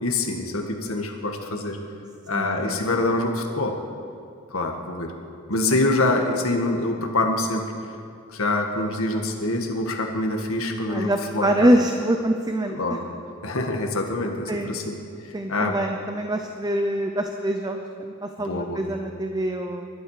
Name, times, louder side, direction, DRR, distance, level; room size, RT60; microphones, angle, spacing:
voice 1, 0.0-1.8 2.3-3.8 4.5-5.1 5.5-7.6 8.3-11.7 12.7-13.0 13.4-15.0 15.5-15.8 18.4-18.8, left 2 dB, 75° left, 3 dB, 1.8 m, -25 dB
voice 2, 2.3-2.8 5.7-5.8 10.9-13.0 14.5-14.7 15.3-19.9, right 1 dB, 20° right, 5 dB, 0.7 m, -25 dB
22.5 x 12.5 x 5.0 m, 2.4 s
head